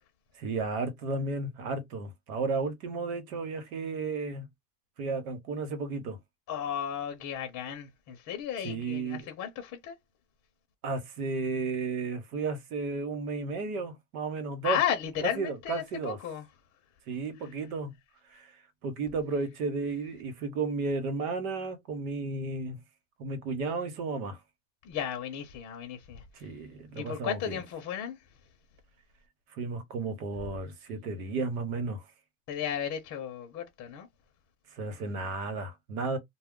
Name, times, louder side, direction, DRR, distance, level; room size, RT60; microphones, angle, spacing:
voice 1, 0.4-4.5 5.0-6.2 8.6-9.3 10.8-14.8 15.2-16.2 17.1-17.9 18.3-18.5 18.8-22.8 23.2-24.4 26.3-27.6 29.5-32.0 34.7-36.2, right 3 dB, 85° right, 1.1 m, -33 dB
voice 2, 6.5-9.9 14.6-16.4 24.8-26.2 27.0-28.2 32.5-34.1, left 9 dB, 40° left, 0.6 m, -34 dB
2.3 x 2.0 x 3.6 m
supercardioid pair, 130°, 43 cm